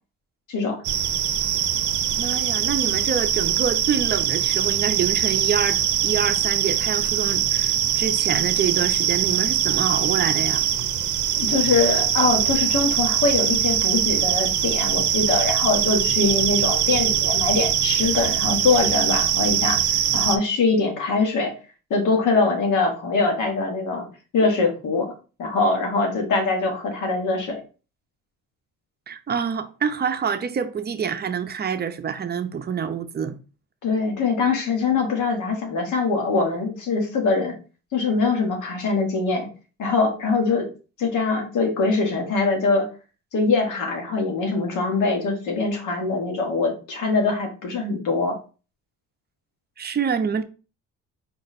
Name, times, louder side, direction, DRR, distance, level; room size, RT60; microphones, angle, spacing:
voice 1, 0.5-0.8 11.3-19.8 20.1-21.5 21.9-24.1 24.3-25.1 25.4-27.6 33.8-37.5 37.9-39.5 39.8-40.7 41.0-42.9 43.3-48.4, left 4 dB, 80° left, 1.4 m, -23 dB
sound 1, 0.8-20.4, right 10 dB, 80° right, 0.6 m, -22 dB
voice 2, 2.2-10.6 29.1-33.4 49.8-50.4, right 7 dB, 35° right, 0.5 m, -26 dB
4.5 x 2.1 x 4.0 m
cardioid pair, 90°, 30 cm